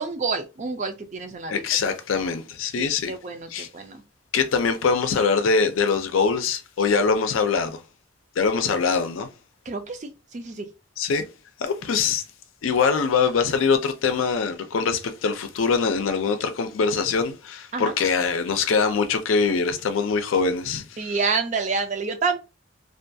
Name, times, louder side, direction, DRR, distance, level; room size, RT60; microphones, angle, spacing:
voice 1, 0.0-1.9 2.8-4.0 9.7-10.7 17.7-17.9 21.0-22.4, right 4 dB, 35° right, 0.4 m, -28 dB
voice 2, 1.5-3.1 3.5-3.7 4.3-7.8 8.4-9.3 11.0-11.2 11.6-12.2 12.6-21.2, left 5 dB, 90° left, 0.4 m, -23 dB
2.5 x 2.3 x 2.6 m
head